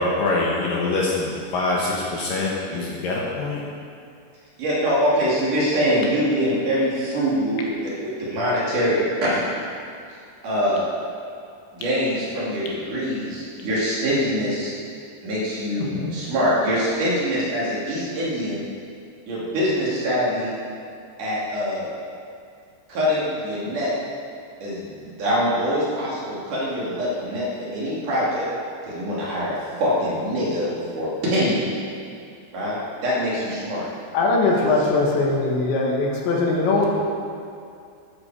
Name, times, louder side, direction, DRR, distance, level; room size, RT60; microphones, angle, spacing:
voice 1, 0.0-3.6, left 2 dB, 65° left, -4 dB, 2.5 m, -24 dB
voice 2, 4.6-7.7 8.0-9.4 10.4-10.8 11.7-14.7 15.2-18.6 19.3-20.5 21.2-21.9 22.9-23.9 24.6-28.5 28.8-31.7 32.5-33.9 34.9-35.0, equal, 50° right, -7 dB, 3.7 m, -24 dB
voice 3, 15.8-16.2 34.1-36.9, left 3 dB, 85° left, -1 dB, 3.9 m, -21 dB
13.0 x 11.0 x 4.9 m, 2.4 s
omnidirectional pair, 5.1 m